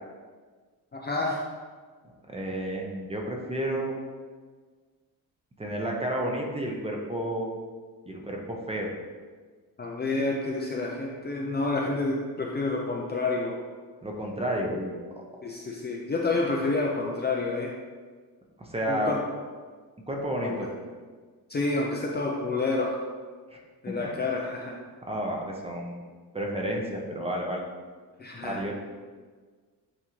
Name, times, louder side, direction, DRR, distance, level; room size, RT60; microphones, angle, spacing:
voice 1, 0.9-1.4 9.8-13.5 15.4-17.7 18.9-19.2 20.4-20.6 21.5-23.0 23.8-24.8 28.2-28.6, left 3 dB, 25° left, -2 dB, 0.6 m, -29 dB
voice 2, 2.3-4.0 5.6-7.5 8.1-8.9 14.0-14.9 18.6-19.1 20.1-20.7 23.5-23.6 24.0-24.1 25.1-26.0 26.3-27.6 28.4-28.7, right 1 dB, 15° right, 0 dB, 0.8 m, -31 dB
8.5 x 3.7 x 3.1 m, 1.5 s
cardioid pair, 135°, 40 cm